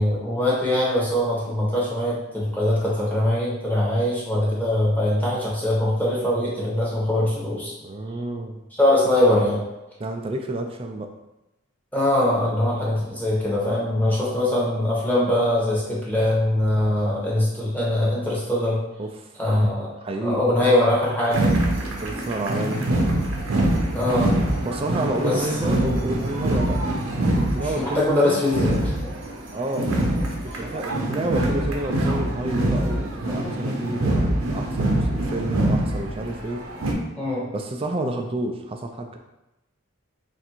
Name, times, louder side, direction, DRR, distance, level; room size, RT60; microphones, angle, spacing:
voice 1, 0.0-7.7 8.8-9.6 11.9-18.8 19.4-19.9 20.2-21.5 23.9-24.3 25.2-25.5 27.8-28.9 37.2-37.5, left 1 dB, 10° left, -6 dB, 0.9 m, -22 dB
voice 2, 7.8-8.6 10.0-11.1 19.0-19.3 20.0-20.7 21.0-22.8 24.7-26.9 27.3-28.4 29.5-30.0 30.4-36.6 37.5-39.2, right 1 dB, 25° right, 3 dB, 0.3 m, -30 dB
sound 1, 21.3-36.9, right 1 dB, 80° right, 0.7 m, -24 dB
3.4 x 2.6 x 4.3 m, 0.96 s
head